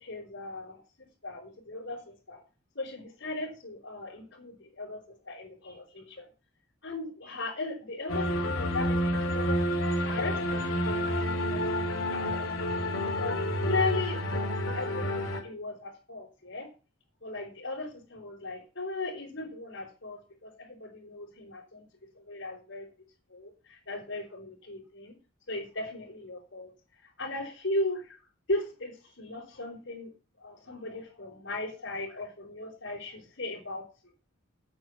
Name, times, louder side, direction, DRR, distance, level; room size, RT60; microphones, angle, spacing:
voice 1, 0.0-2.0 2.3-2.4 2.7-5.0 5.2-6.3 6.8-9.6 9.8-11.6 11.9-12.5 13.1-13.4 13.6-16.7 17.2-21.9 22.2-22.9 23.3-25.1 25.5-26.7 27.0-28.2 28.5-30.1 30.4-33.8, left 2 dB, 60° left, -5 dB, 4.4 m, -37 dB
sound 1, 8.1-15.4, equal, 85° left, 2.9 m, -29 dB
8.9 x 8.7 x 6.0 m, 0.34 s
head